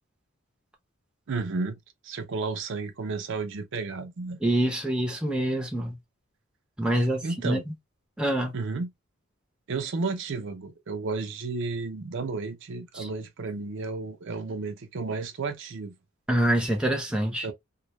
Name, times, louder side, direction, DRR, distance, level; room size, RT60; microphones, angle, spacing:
voice 1, 1.3-1.8 2.0-4.4 7.2-7.6 8.5-8.9 9.7-15.9 17.4-17.5, right 4 dB, 60° right, 0.5 m, -32 dB
voice 2, 4.4-6.0 6.8-7.6 8.2-8.5 13.0-13.1 16.3-17.5, right 1 dB, 5° right, 0.6 m, -26 dB
2.2 x 2.1 x 2.9 m
head